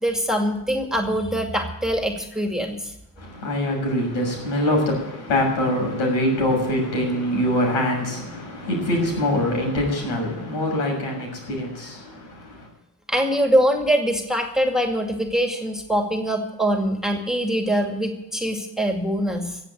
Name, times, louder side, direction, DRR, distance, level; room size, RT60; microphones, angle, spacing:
voice 1, 0.0-2.9 13.1-19.6, equal, ahead, 3 dB, 2.2 m, -23 dB
voice 2, 3.2-12.7, left 1 dB, 85° left, 1 dB, 6.7 m, -24 dB
15.5 x 7.9 x 9.2 m, 0.86 s
cardioid pair, 95°, 40 cm